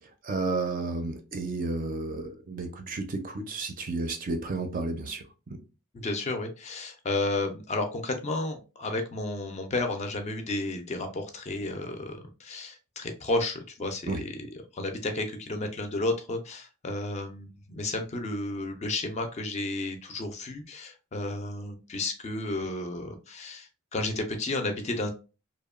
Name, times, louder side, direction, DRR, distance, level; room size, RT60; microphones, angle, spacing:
voice 1, 0.2-5.2 14.1-14.2, right 3 dB, 40° right, 0.4 m, -32 dB
voice 2, 5.9-25.1, left 2 dB, 30° left, 0.4 m, -32 dB
2.8 x 2.1 x 2.3 m
head